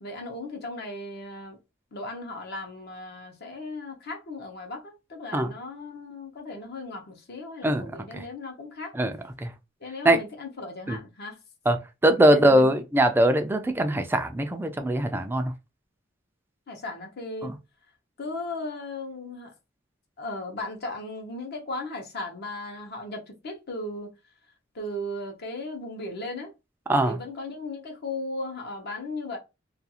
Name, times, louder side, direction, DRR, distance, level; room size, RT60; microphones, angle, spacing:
voice 1, 0.0-1.6 1.9-8.9 9.8-11.4 12.3-12.8 16.7-17.5 18.2-19.5 20.2-24.1 24.7-26.5 27.0-29.4, left 2 dB, 55° left, 0.7 m, -36 dB
voice 2, 7.6-8.2 8.9-9.1 9.4-9.5 10.0-10.2 10.9-11.0 11.7-11.8 12.0-15.5 17.4-17.5 26.9-27.2, right 1 dB, 10° right, 0.3 m, -22 dB
2.4 x 2.3 x 2.8 m
head